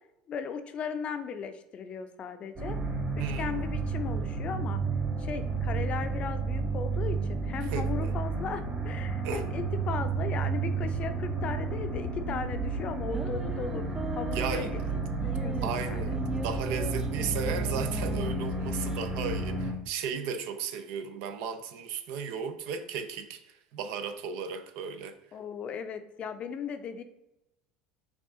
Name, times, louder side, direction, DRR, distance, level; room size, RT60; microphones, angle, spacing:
voice 1, 0.3-2.8 3.1-4.8 5.2-13.8 14.1-16.1 25.3-27.0, left 6 dB, 45° left, 0.5 m, -37 dB
sound 1, 2.6-19.7, right 3 dB, 35° right, 1.5 m, -31 dB
voice 2, 3.2-3.6 7.7-8.1 9.2-9.5 14.3-14.7 15.6-25.2, right 6 dB, 70° right, 0.5 m, -35 dB
sound 2, 13.1-19.0, right 3 dB, 20° right, 0.5 m, -40 dB
5.5 x 2.4 x 3.6 m
hypercardioid pair, 90°, 3 cm